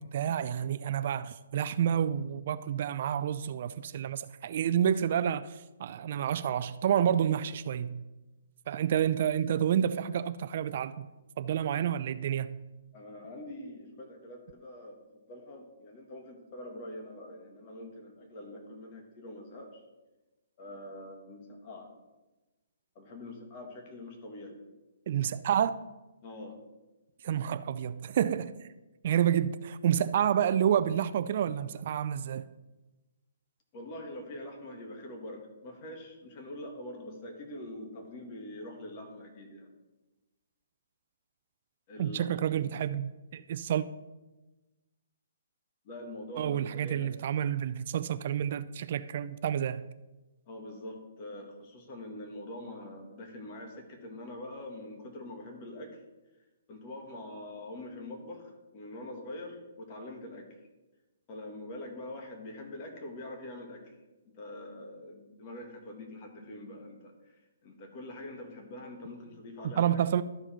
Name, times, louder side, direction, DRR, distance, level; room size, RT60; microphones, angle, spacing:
voice 1, 0.0-8.0 8.7-11.0 11.4-12.6 25.1-25.8 27.2-28.7 29.0-32.5 42.0-43.8 46.4-49.9 69.6-70.2, right 9 dB, 50° right, 0.3 m, -29 dB
voice 2, 12.9-19.8 20.6-21.9 23.0-24.6 26.2-26.6 33.7-39.7 41.9-42.4 45.9-47.1 50.5-56.0 56.7-60.5 61.3-63.8 64.3-67.4 67.6-70.0, left 1 dB, 35° left, 1.8 m, -44 dB
12.5 x 4.9 x 4.4 m
hypercardioid pair, 150°, 0 cm